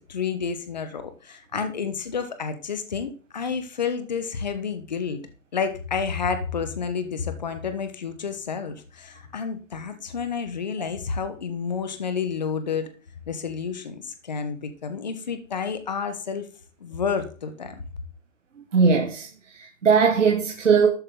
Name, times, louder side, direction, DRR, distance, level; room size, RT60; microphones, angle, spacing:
voice 1, 0.1-5.2 5.5-12.9 13.3-16.4 16.8-17.8, left 6 dB, 30° left, 1.2 m, -30 dB
voice 2, 18.7-19.3 19.6-20.9, right 5 dB, 60° right, 1.7 m, -19 dB
13.0 x 7.9 x 3.9 m
hypercardioid pair, 175°, 41 cm